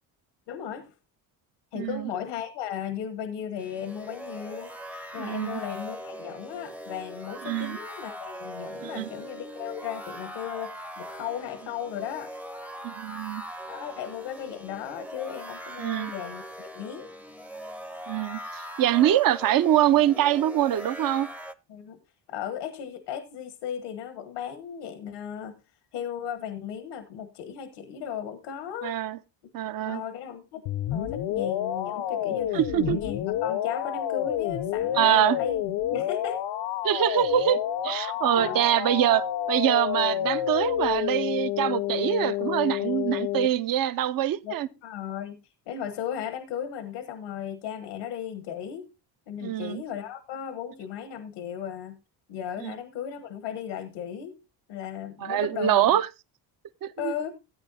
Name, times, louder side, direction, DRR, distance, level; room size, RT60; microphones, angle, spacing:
voice 1, 0.5-0.9 1.7-4.7 5.1-12.3 13.7-17.1 21.7-22.0 22.3-25.6 25.9-29.0 29.8-35.6 35.9-36.4 38.3-38.6 44.4-45.4 45.7-48.9 49.3-52.0 52.3-54.4 54.7-56.0 57.0-57.3, left 9 dB, 85° left, 1.3 m, -36 dB
voice 2, 1.7-2.1 5.2-5.6 7.4-7.8 8.8-9.1 12.8-13.4 15.8-16.1 18.1-21.3 28.8-29.2 29.5-30.0 32.5-33.0 34.9-35.4 36.8-44.7 49.4-49.8 52.6-52.8 55.2-56.1 56.8-57.1, right 12 dB, 50° right, 0.7 m, -24 dB
sound 1, 3.6-21.5, equal, 5° right, 0.6 m, -41 dB
sound 2, 30.7-43.5, left 11 dB, 65° left, 0.8 m, -29 dB
14.5 x 8.5 x 2.7 m
cardioid pair, 90°, 45 cm